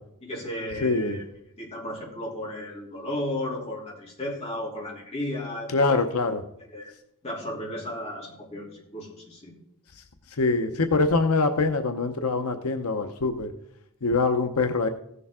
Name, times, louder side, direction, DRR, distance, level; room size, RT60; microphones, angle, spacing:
voice 1, 0.2-1.2 1.6-6.0 6.7-6.9 7.2-9.5, left 1 dB, 30° left, -4 dB, 2.9 m, -34 dB
voice 2, 0.8-1.2 5.7-6.4 10.4-13.5 14.0-14.9, left 3 dB, 85° left, 7 dB, 0.7 m, -24 dB
16.0 x 6.8 x 3.6 m, 0.77 s
head